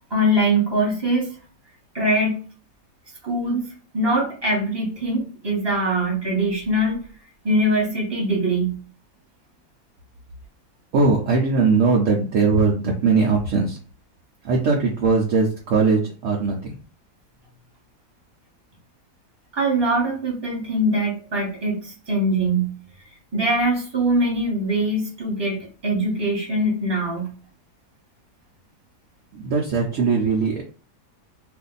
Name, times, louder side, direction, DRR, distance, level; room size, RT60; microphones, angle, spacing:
voice 1, 0.1-1.3 1.9-2.4 3.2-3.7 3.9-7.0 7.4-8.8 19.5-22.7 23.3-27.3, right 1 dB, 15° right, -3 dB, 1.1 m, -22 dB
voice 2, 10.9-13.8 14.4-16.8 29.3-30.6, right 4 dB, 65° right, -2 dB, 0.9 m, -20 dB
2.6 x 2.5 x 3.9 m, 0.39 s
omnidirectional pair, 1.7 m